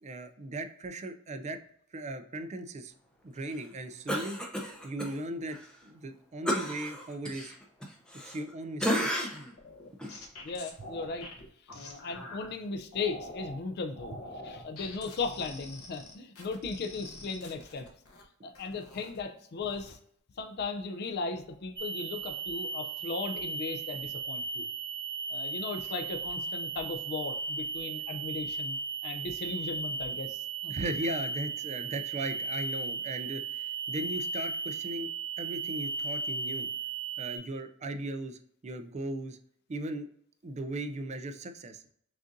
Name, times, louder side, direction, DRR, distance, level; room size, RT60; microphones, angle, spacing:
voice 1, 0.0-1.6 1.9-2.9 3.2-4.4 4.8-7.5 8.2-9.3 11.8-11.9 14.1-14.2 14.6-14.7 30.7-35.1 35.4-36.7 37.2-39.4 39.7-40.1 40.4-41.8, right 1 dB, 30° right, 8 dB, 0.4 m, -38 dB
Cough, 4.1-5.1 5.5-5.6 6.5-8.5 8.8-9.5 10.0-10.1, equal, 5° left, 0.7 m, -32 dB
sound 1, 9.6-12.5 12.9-13.6 14.0-18.2 18.5-19.2 19.6-19.9, left 2 dB, 90° left, 0.9 m, -46 dB
voice 2, 10.4-11.3 11.7-14.1 14.4-17.9 18.4-20.0 20.4-24.6 25.3-28.8 29.0-30.7, left 4 dB, 50° left, 6 dB, 0.4 m, -37 dB
sound 2, 21.8-37.4, right 4 dB, 55° right, 0.7 m, -36 dB
6.1 x 2.5 x 2.6 m, 0.67 s
head